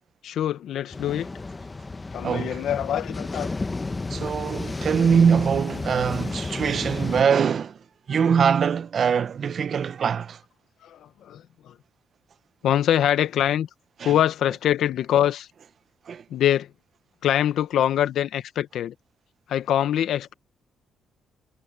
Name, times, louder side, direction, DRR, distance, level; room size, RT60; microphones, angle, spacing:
voice 1, 0.2-1.3 2.1-3.5 10.8-11.7 12.6-13.7 14.0-15.5 16.3-16.7 17.2-18.9 19.5-20.3, left 11 dB, 75° left, 1.3 m, -24 dB
sound 1, 0.9-7.2, left 3 dB, 25° left, 1.2 m, -32 dB
voice 2, 2.2-2.6 4.1-7.8 8.1-10.4 14.0-14.1 16.1-16.2, right 7 dB, 50° right, 0.9 m, -23 dB
cardioid pair, 90°, 0 cm